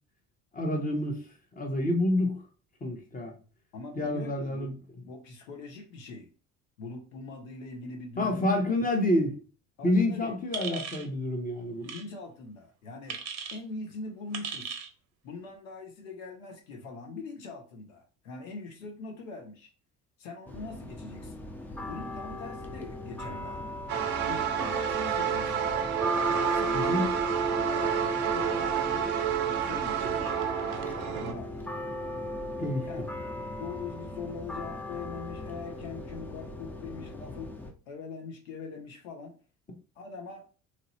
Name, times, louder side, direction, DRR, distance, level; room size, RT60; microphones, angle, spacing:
voice 1, 0.5-1.2 1.6-2.4 2.8-3.3 4.0-4.7 8.2-9.4 9.8-11.9 26.7-27.1 32.6-32.9, left 1 dB, 20° left, 0.9 m, -28 dB
voice 2, 3.7-4.8 5.0-6.3 6.8-8.5 9.8-10.4 11.8-14.7 15.2-19.7 20.2-21.4 21.9-23.7 24.2-25.8 26.5-27.2 27.6-28.1 28.3-29.2 29.6-30.4 31.2-31.6 32.9-33.1 33.5-37.5 37.9-39.4 40.0-40.5, left 4 dB, 70° left, 0.9 m, -42 dB
sound 1, 10.5-11.1 11.8-12.0 13.1-13.6 14.3-14.9, right 6 dB, 40° right, 0.6 m, -37 dB
sound 2, 20.5-37.7, equal, 5° left, 0.3 m, -36 dB
sound 3, 23.9-31.3, right 9 dB, 80° right, 0.5 m, -29 dB
3.0 x 2.5 x 3.0 m
figure-of-eight pair, 60°, 43 cm